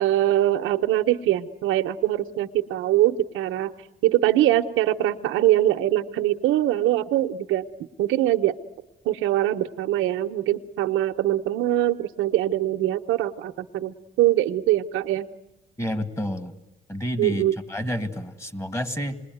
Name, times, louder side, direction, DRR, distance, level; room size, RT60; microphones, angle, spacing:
voice 1, 0.0-3.7 4.0-7.7 8.0-8.5 9.0-15.3 17.2-17.5, right 13 dB, 90° right, 7 dB, 0.8 m, -23 dB
voice 2, 15.8-16.5 16.9-19.2, equal, 15° left, 11 dB, 2.0 m, -29 dB
27.5 x 21.0 x 9.3 m, 1.0 s
cardioid pair, 90°, 20 cm